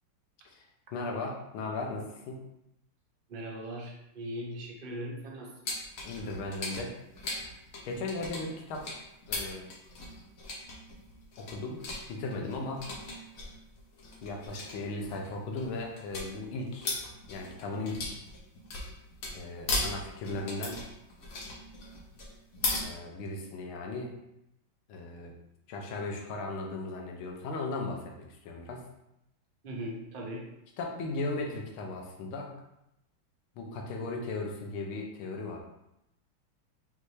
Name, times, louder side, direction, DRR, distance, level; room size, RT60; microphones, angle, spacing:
voice 1, 0.9-2.4 6.0-6.9 7.4-7.5 7.8-9.0 9.3-9.7 11.4-11.8 12.1-12.8 14.2-16.9 17.3-18.2 19.3-20.8 22.7-24.1 24.9-25.3 25.7-28.8 30.8-32.5 33.6-35.6, left 2 dB, 80° left, 1 dB, 1.6 m, -37 dB
voice 2, 3.3-5.5 29.6-30.5, equal, 65° right, -1 dB, 0.5 m, -39 dB
sound 1, 5.6-22.8, left 2 dB, 55° left, 1.1 m, -38 dB
5.6 x 2.7 x 3.2 m, 0.85 s
omnidirectional pair, 2.2 m